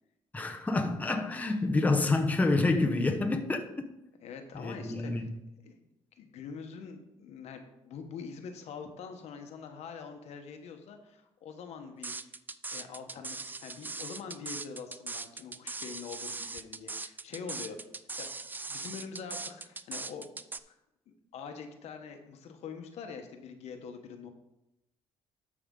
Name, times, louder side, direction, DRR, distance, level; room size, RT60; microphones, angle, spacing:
voice 1, 0.3-3.6 4.5-5.3, left 2 dB, 15° left, 0.9 m, -28 dB
voice 2, 4.2-5.3 5.6-5.8 6.2-12.3 12.7-17.8 18.2-18.3 18.7-20.3 20.7-20.8 21.1-24.3, left 6 dB, 70° left, 1.1 m, -44 dB
sound 1, 12.0-20.6, right 3 dB, 15° right, 0.4 m, -40 dB
12.5 x 4.9 x 3.8 m
cardioid pair, 95°, 12 cm